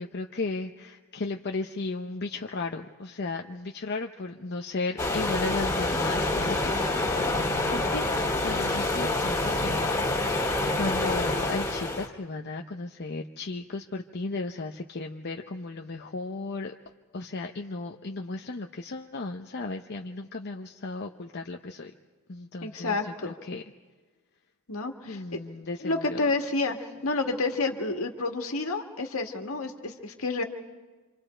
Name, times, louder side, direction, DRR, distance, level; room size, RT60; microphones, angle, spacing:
voice 1, 0.0-16.7 17.1-21.9 22.3-23.6 25.1-26.2, left 3 dB, 50° left, 3 dB, 0.8 m, -35 dB
sound 1, 5.0-12.1, left 2 dB, 15° left, 2.3 m, -27 dB
voice 2, 22.6-23.3 24.7-25.4 25.8-30.4, left 3 dB, 70° left, 4 dB, 1.9 m, -30 dB
27.0 x 26.5 x 4.5 m, 1.3 s
head